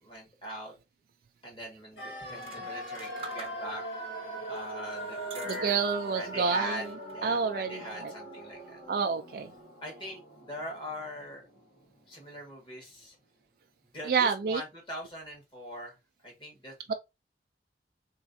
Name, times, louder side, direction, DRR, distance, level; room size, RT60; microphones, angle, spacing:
voice 1, 0.0-0.7 1.4-3.8 4.5-6.9 7.1-8.8 9.8-11.4 12.1-13.2 13.9-16.0 16.2-16.9, equal, 30° left, 1.6 m, -41 dB
sound 1, 2.0-11.9 12.2-12.3, right 1 dB, 85° left, 1.8 m, -41 dB
sound 2, 2.2-3.9 4.5-6.3 6.7-7.3, right 4 dB, 30° right, 0.7 m, -49 dB
voice 2, 5.5-6.8 7.2-8.1 8.9-9.5 14.1-14.6 16.9-17.0, right 5 dB, 55° right, 0.3 m, -28 dB
3.6 x 3.2 x 2.6 m
head